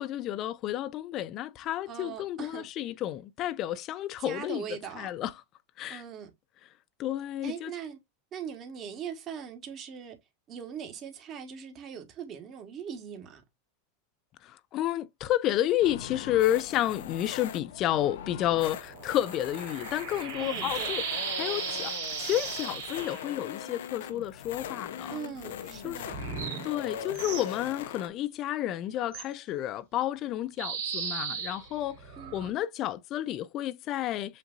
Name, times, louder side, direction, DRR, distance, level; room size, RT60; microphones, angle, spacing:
voice 1, 0.0-4.6 5.0-5.3 5.8-6.0 7.0-7.7 14.4-21.0 21.4-21.9 22.2-25.2 25.8-26.0 26.6-32.1 32.3-34.4, left 13 dB, 45° left, 0.4 m, -31 dB
voice 2, 1.9-2.7 4.2-5.1 5.9-6.3 7.4-8.0 8.3-10.2 10.5-13.4 20.4-21.0 25.1-26.1 32.2-32.3, right 7 dB, 40° right, 1.4 m, -40 dB
sound 1, 15.8-28.1, left 9 dB, 75° left, 0.7 m, -41 dB
sound 2, 18.8-23.3 26.1-27.5 29.1-29.3 30.6-32.5, right 6 dB, 65° right, 2.5 m, -36 dB
7.4 x 2.6 x 2.5 m
hypercardioid pair, 100°, 0 cm